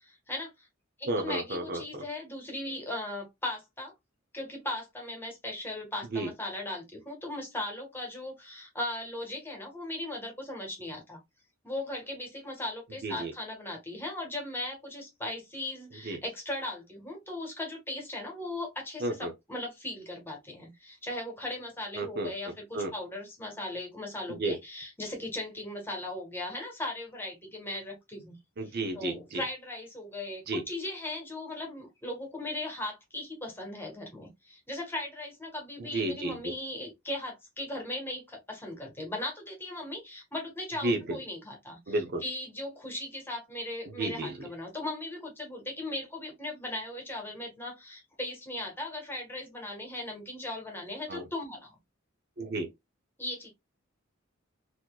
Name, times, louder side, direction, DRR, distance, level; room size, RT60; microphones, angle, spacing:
voice 1, 0.0-0.7 1.0-3.9 4.3-11.2 11.6-28.4 28.6-51.8 53.2-53.5, left 1 dB, 10° left, 1.4 m, -38 dB
voice 2, 1.1-2.0 6.1-6.3 13.0-13.3 16.0-16.2 19.0-19.3 22.0-22.3 22.7-22.9 24.3-24.6 28.6-29.4 30.5-30.6 35.9-36.5 40.8-41.2 41.9-42.2 44.0-44.3 51.1-51.2 52.4-52.7, right 2 dB, 50° right, 0.7 m, -32 dB
4.1 x 2.9 x 2.3 m
head